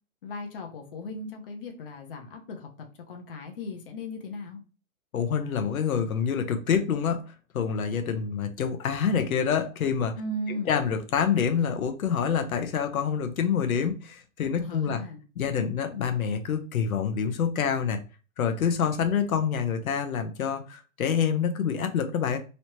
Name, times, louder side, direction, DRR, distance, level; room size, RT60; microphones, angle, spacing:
voice 1, 0.2-4.6 10.2-10.8 14.6-15.2, left 1 dB, 40° left, 3 dB, 0.8 m, -37 dB
voice 2, 5.1-7.2 7.5-10.1 10.5-15.0 15.4-18.0 18.4-22.4, left 7 dB, 80° left, 7 dB, 0.8 m, -27 dB
3.1 x 2.8 x 3.0 m, 0.34 s
hypercardioid pair, 165°, 41 cm